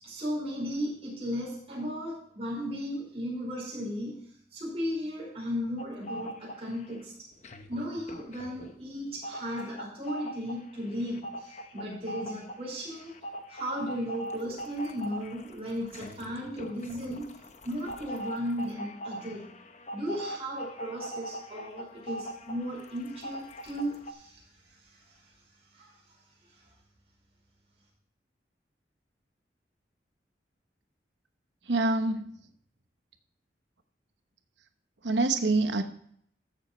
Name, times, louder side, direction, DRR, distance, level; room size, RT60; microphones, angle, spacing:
voice 1, 0.0-4.2 4.5-7.3 7.7-13.2 13.5-17.3 17.6-19.4 19.9-25.3 25.7-26.2 26.5-26.6, equal, 35° right, -4 dB, 5.1 m, -36 dB
sound 1, 5.8-7.0 7.3-24.1, equal, 40° left, 0.9 m, -42 dB
voice 2, 31.7-32.3 35.0-35.8, right 2 dB, 90° right, 8 dB, 1.0 m, -25 dB
14.0 x 7.3 x 4.3 m, 0.67 s
head